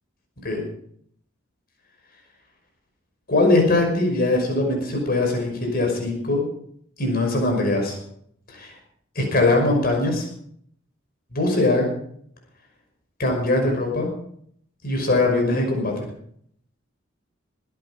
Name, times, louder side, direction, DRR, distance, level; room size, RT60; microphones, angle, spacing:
voice 1, 3.3-6.4 7.0-8.0 8.5-8.7 9.2-10.3 11.3-11.9 13.2-14.1 14.8-16.1, left 2 dB, 50° left, 1 dB, 5.6 m, -21 dB
23.0 x 10.5 x 5.2 m, 0.65 s
head